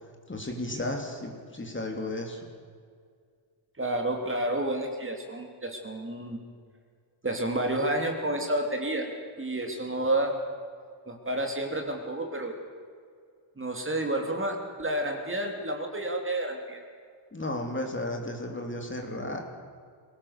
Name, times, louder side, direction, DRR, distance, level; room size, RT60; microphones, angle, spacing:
voice 1, 0.3-2.5 17.3-19.4, left 1 dB, 25° left, 2 dB, 3.3 m, -34 dB
voice 2, 3.8-6.4 7.2-9.1 9.4-10.3 11.1-12.5 13.6-16.8, right 1 dB, 25° right, 2 dB, 3.2 m, -30 dB
22.5 x 18.5 x 6.8 m, 2.1 s
wide cardioid pair, 110°, 48 cm